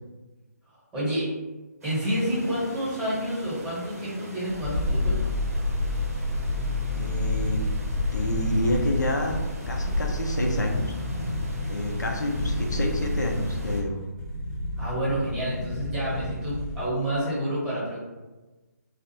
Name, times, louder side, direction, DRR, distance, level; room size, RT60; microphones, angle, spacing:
voice 1, 0.9-1.3 1.8-5.2 14.8-18.0, right 1 dB, 10° right, -11 dB, 0.9 m, -29 dB
sound 1, 1.8-13.8, right 1 dB, 55° right, 0.6 m, -42 dB
sound 2, 4.5-16.9 17.1-17.2, left 1 dB, 20° left, 0.6 m, -29 dB
voice 2, 6.9-7.6 8.1-9.4 9.7-10.9 11.7-14.0, left 1 dB, 75° left, 1 dB, 0.5 m, -28 dB
2.4 x 2.0 x 2.8 m, 1.2 s
figure-of-eight pair, 145°, 10 cm